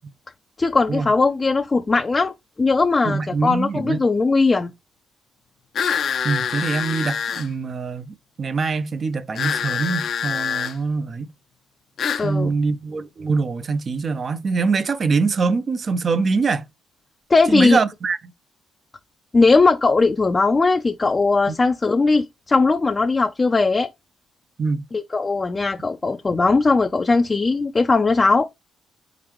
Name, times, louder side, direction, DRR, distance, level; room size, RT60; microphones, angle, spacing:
voice 1, 0.6-2.3 2.6-4.7 12.2-12.5 17.3-17.8 19.3-23.9 24.9-28.5, left 3 dB, 25° left, 0.5 m, -19 dB
voice 2, 3.0-4.0 6.2-11.3 12.2-16.7 17.5-18.2 21.5-21.6 24.6-24.9, right 4 dB, 40° right, 0.7 m, -23 dB
sound 1, 5.7-7.5 9.3-10.7 12.0-12.3, left 7 dB, 60° left, 0.7 m, -25 dB
4.3 x 3.9 x 3.1 m
cardioid pair, 90°, 0 cm